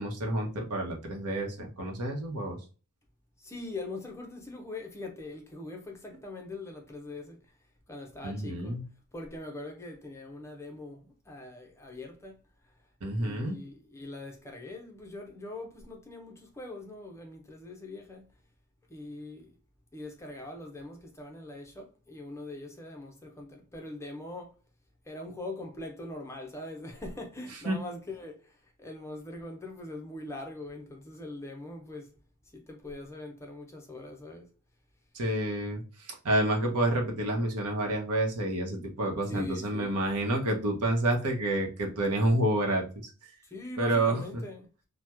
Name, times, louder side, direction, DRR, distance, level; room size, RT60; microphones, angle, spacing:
voice 1, 0.0-2.6 8.2-8.8 13.0-13.6 27.7-27.8 35.1-35.8 36.2-42.8 43.8-44.2, right 1 dB, 90° right, 0.8 m, -28 dB
voice 2, 3.4-7.5 7.9-8.8 9.1-12.4 13.2-18.3 18.9-19.6 19.9-24.5 25.1-32.2 32.5-34.5 39.3-40.0 43.4-44.7, left 2 dB, 10° left, 0.5 m, -42 dB
2.9 x 2.1 x 3.3 m
head